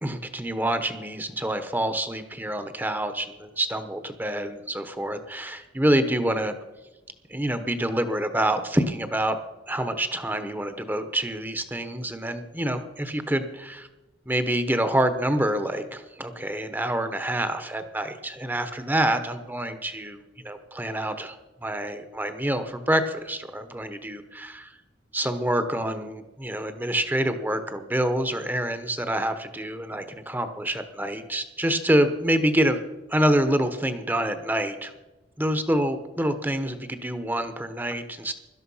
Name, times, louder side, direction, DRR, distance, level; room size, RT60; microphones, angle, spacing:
voice 1, 0.0-6.5 7.3-9.4 9.7-13.9 14.3-20.2 20.4-21.4 21.6-24.7 25.1-32.8 33.1-34.9 35.4-38.3, right 1 dB, 10° right, 9 dB, 1.0 m, -26 dB
17.5 x 12.5 x 5.6 m, 1.1 s
head